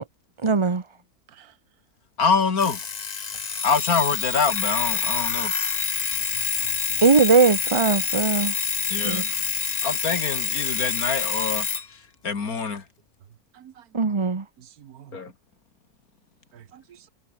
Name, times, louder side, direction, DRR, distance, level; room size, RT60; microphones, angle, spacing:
voice 1, 0.4-0.8 7.0-8.5 9.0-9.2 13.9-14.4, right 5 dB, 20° right, 1.0 m, -19 dB
voice 2, 2.2-2.8 3.6-5.5 8.9-9.4 9.8-11.7 12.2-12.8 15.1-15.3, left 5 dB, 75° left, 2.7 m, -25 dB
Alarm, 2.6-11.9, left 5 dB, 35° left, 0.9 m, -27 dB
voice 3, 6.3-7.0 13.5-13.8 14.6-15.1 16.5-17.1, right 10 dB, 80° right, 1.5 m, -48 dB
omnidirectional pair, 1.6 m